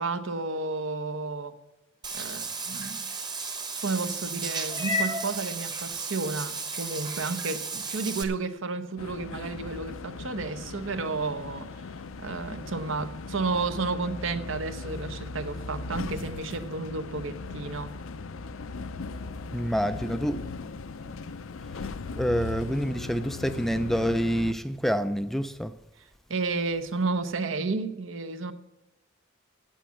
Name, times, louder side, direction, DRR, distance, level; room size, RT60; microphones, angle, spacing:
voice 1, 0.0-1.6 2.1-3.1 3.8-11.8 12.2-18.0 26.3-28.5, right 3 dB, 70° right, 0.8 m, -32 dB
Meow / Water / Bathtub (filling or washing), 2.0-8.2, right 2 dB, 20° right, 1.0 m, -33 dB
sound 1, 9.0-24.5, left 3 dB, 80° left, 0.6 m, -38 dB
voice 2, 19.5-20.4 22.2-25.7, equal, ahead, 0.3 m, -27 dB
8.9 x 8.1 x 8.2 m
head